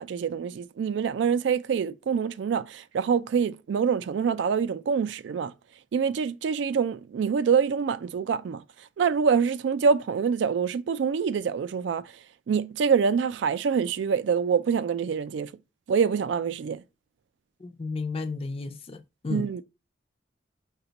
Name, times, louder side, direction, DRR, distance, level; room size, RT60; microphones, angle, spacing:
voice 1, 0.0-5.5 5.9-8.6 9.0-12.0 12.5-15.5 15.9-16.8 19.3-19.6, right 6 dB, 70° right, 0.3 m, -25 dB
voice 2, 17.6-19.5, left 3 dB, 30° left, 0.4 m, -33 dB
5.7 x 2.2 x 3.9 m
head